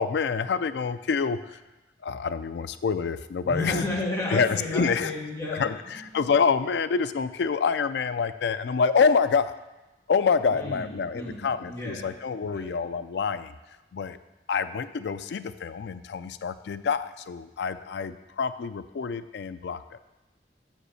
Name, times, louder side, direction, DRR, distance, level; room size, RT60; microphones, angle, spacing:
voice 1, 0.0-1.6 2.0-3.8 4.3-5.1 5.5-9.5 10.1-13.5 13.9-14.2 14.5-20.0, left 5 dB, 70° left, 12 dB, 0.4 m, -27 dB
voice 2, 3.4-6.3 10.5-12.0 12.4-12.7, left 2 dB, 20° left, -5 dB, 1.9 m, -33 dB
6.2 x 5.1 x 6.5 m, 1.0 s
head